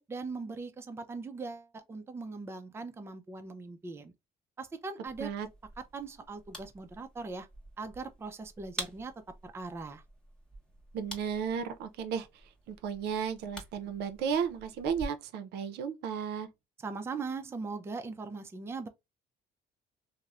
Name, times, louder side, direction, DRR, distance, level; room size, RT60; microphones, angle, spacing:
voice 1, 0.0-4.1 4.6-5.3 5.8-7.5 7.8-9.1 9.4-10.0 16.8-18.9, right 4 dB, 15° right, 0.4 m, -40 dB
sound 1, 5.1-15.1, equal, 5° left, 0.9 m, -48 dB
voice 2, 10.9-12.3 12.7-16.5, right 7 dB, 75° right, 0.5 m, -34 dB
2.9 x 2.0 x 2.3 m
cardioid pair, 110°, 17 cm